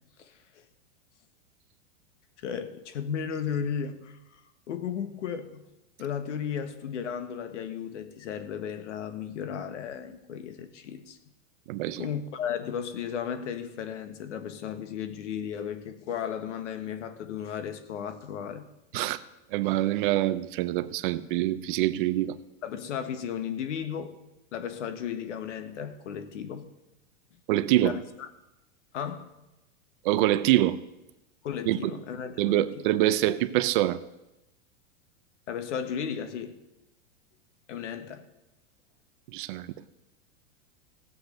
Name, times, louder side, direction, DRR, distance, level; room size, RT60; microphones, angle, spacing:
voice 1, 2.4-4.4 4.7-5.7 6.0-11.2 12.0-18.7 22.6-24.2 24.5-26.7 27.8-28.3 28.9-29.3 31.4-32.8 35.5-36.6 37.7-38.2, left 8 dB, 85° left, 1.6 m, -35 dB
voice 2, 11.7-12.0 18.9-19.2 19.5-22.3 27.5-28.0 30.0-30.8 31.6-31.9 32.4-34.0 39.3-39.7, right 14 dB, 45° right, 0.7 m, -25 dB
16.0 x 8.0 x 6.6 m
supercardioid pair, 155°, 35 cm